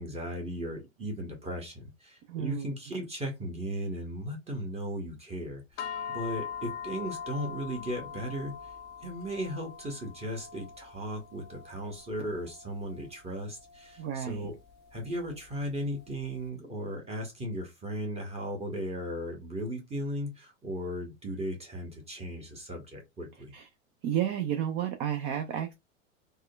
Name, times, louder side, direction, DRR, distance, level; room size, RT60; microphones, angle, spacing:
voice 1, 0.0-8.7 9.0-14.5 14.9-23.5, equal, 15° right, 0.9 m, -36 dB
voice 2, 2.3-2.7 14.0-14.5 23.5-23.7 24.0-25.7, right 10 dB, 35° right, 0.5 m, -31 dB
sound 1, 5.8-16.3, left 7 dB, 25° left, 0.4 m, -43 dB
3.6 x 2.1 x 2.2 m
hypercardioid pair, 105°, 39 cm